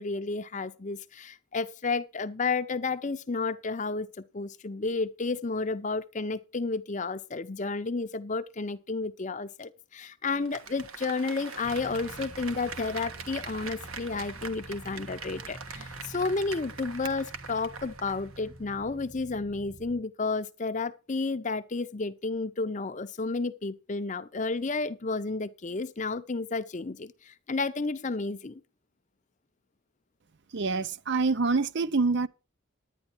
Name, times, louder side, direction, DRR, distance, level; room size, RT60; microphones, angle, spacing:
voice 1, 0.0-28.6, left 3 dB, 35° left, 0.6 m, -32 dB
Applause, 10.3-18.5 18.8-18.9, right 5 dB, 75° right, 1.5 m, -43 dB
sound 1, 11.6-20.0, right 1 dB, 15° right, 0.7 m, -47 dB
voice 2, 30.5-32.3, right 4 dB, 50° right, 0.5 m, -26 dB
10.5 x 9.8 x 4.4 m
head